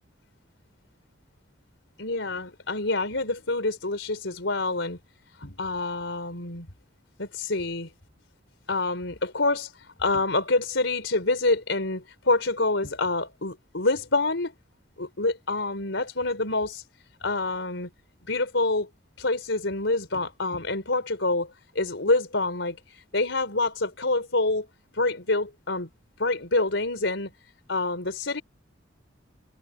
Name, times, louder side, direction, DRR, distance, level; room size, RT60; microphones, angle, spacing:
voice 1, 2.0-5.0 5.4-6.7 7.2-7.9 8.7-14.5 15.0-16.8 17.2-17.9 18.3-18.9 19.2-21.5 21.8-24.7 24.9-25.9 26.2-27.3 27.7-28.4, left 2 dB, 75° left, 3.9 m, -27 dB
head